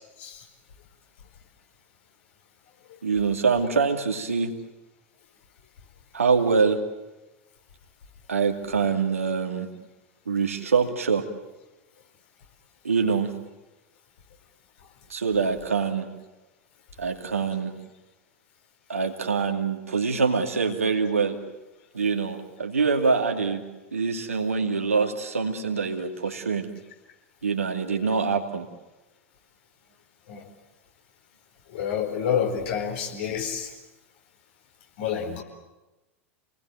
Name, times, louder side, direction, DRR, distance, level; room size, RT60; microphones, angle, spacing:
voice 1, 3.0-4.5 6.1-6.8 8.3-9.7 10.3-11.3 12.8-13.3 15.1-16.1 17.0-17.7 18.9-21.4 21.9-23.6 23.9-26.7 27.4-28.7, right 5 dB, 75° right, 4 dB, 2.5 m, -24 dB
voice 2, 31.7-33.7 35.0-35.4, left 8 dB, 55° left, 3 dB, 4.5 m, -28 dB
27.5 x 19.5 x 9.3 m, 1.1 s
figure-of-eight pair, 85°, 8 cm